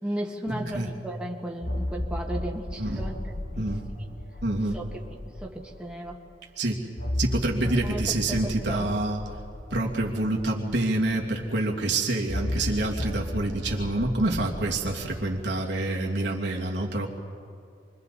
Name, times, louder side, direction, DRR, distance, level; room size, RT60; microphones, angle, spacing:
voice 1, 0.0-3.7 4.7-4.8 5.1-6.2 7.6-8.9, right 1 dB, 5° right, -1 dB, 1.8 m, -35 dB
voice 2, 0.5-0.9 2.8-3.1 3.6-3.8 4.4-4.8 6.6-6.8 7.2-9.2 9.7-17.1, right 2 dB, 80° right, -2 dB, 2.5 m, -27 dB
sound 1, 1.6-6.1 7.0-11.6 12.3-15.3, left 1 dB, 75° left, 1.7 m, -35 dB
28.5 x 23.0 x 4.2 m, 2.5 s
head